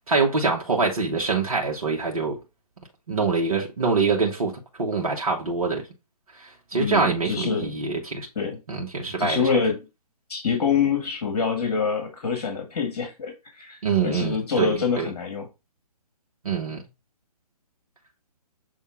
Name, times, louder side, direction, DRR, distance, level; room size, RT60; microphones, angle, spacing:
voice 1, 0.1-2.4 3.1-4.5 4.8-5.8 6.4-8.3 8.7-9.5 13.8-15.1 16.4-16.8, right 4 dB, 60° right, 1.7 m, -25 dB
voice 2, 6.7-7.7 8.4-8.6 9.2-9.8 10.3-15.5, left 6 dB, 45° left, 1.9 m, -26 dB
7.0 x 3.6 x 3.9 m
figure-of-eight pair, 135°, 20 cm